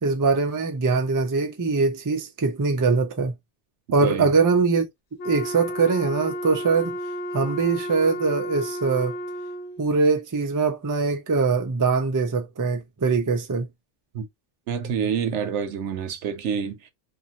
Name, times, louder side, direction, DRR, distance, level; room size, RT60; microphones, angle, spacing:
voice 1, 0.0-3.3 3.9-4.8 5.2-7.0 7.3-9.2 9.8-13.7, right 4 dB, 30° right, 0.3 m, -22 dB
voice 2, 4.0-4.3 14.1-14.3 14.7-16.9, right 7 dB, 85° right, 1.0 m, -27 dB
Wind instrument woodwind instrument, 5.2-9.9, equal, 85° left, 1.1 m, -32 dB
2.6 x 2.5 x 2.8 m
omnidirectional pair, 1.2 m